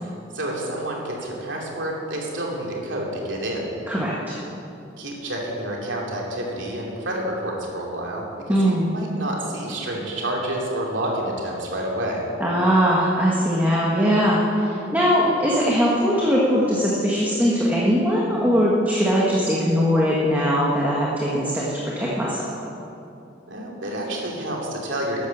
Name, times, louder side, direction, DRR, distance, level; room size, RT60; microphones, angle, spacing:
voice 1, 0.0-3.7 5.0-12.2 23.5-25.3, right 1 dB, 70° right, -2 dB, 2.9 m, -29 dB
voice 2, 3.9-4.4 8.5-8.9 12.4-21.6 22.0-22.6, equal, 10° right, -5 dB, 1.5 m, -20 dB
13.0 x 10.5 x 7.1 m, 2.8 s
head